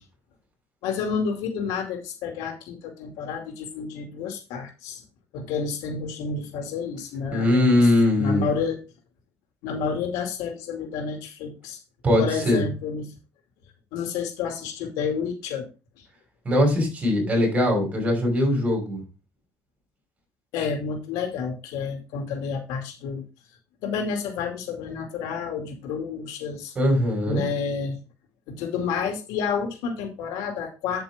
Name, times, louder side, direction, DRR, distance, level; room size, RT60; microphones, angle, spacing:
voice 1, 0.8-5.0 5.3-7.9 8.2-8.8 9.6-11.8 12.2-13.1 13.9-15.7 16.0-16.1 20.5-23.2 23.8-26.7 27.2-28.0 28.5-31.0, left 5 dB, 85° left, 3 dB, 2.4 m, -30 dB
voice 2, 7.3-8.5 12.0-12.6 16.5-19.0 26.8-27.4, left 1 dB, 20° right, 1 dB, 5.5 m, -21 dB
8.9 x 7.8 x 3.4 m, 0.29 s
cardioid pair, 170°, 6 cm